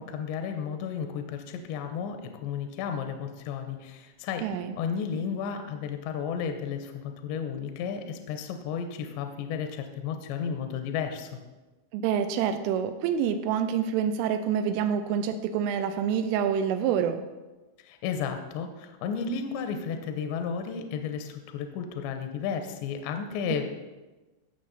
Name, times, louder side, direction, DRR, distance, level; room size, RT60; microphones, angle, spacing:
voice 1, 0.0-4.5 4.8-11.3 17.8-23.7, left 6 dB, 80° left, 6 dB, 2.8 m, -33 dB
voice 2, 4.4-4.8 11.9-17.2, right 8 dB, 85° right, 8 dB, 3.1 m, -27 dB
16.5 x 6.3 x 4.1 m, 1.2 s
omnidirectional pair, 5.7 m